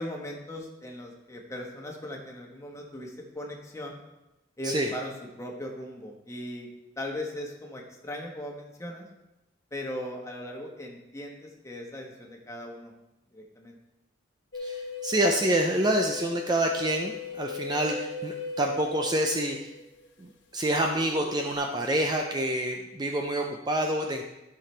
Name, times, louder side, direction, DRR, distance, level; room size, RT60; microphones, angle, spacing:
voice 1, 0.0-4.0 4.6-6.7 7.0-9.0 9.7-12.9 13.3-13.8, left 1 dB, 15° left, 0 dB, 1.2 m, -38 dB
sound 1, 14.5-20.0 20.9-21.5, left 3 dB, 70° left, 1.2 m, -38 dB
voice 2, 14.6-19.7 20.2-20.3 20.5-24.2, right 1 dB, 20° right, 2 dB, 0.5 m, -27 dB
12.5 x 5.9 x 3.3 m, 0.95 s
head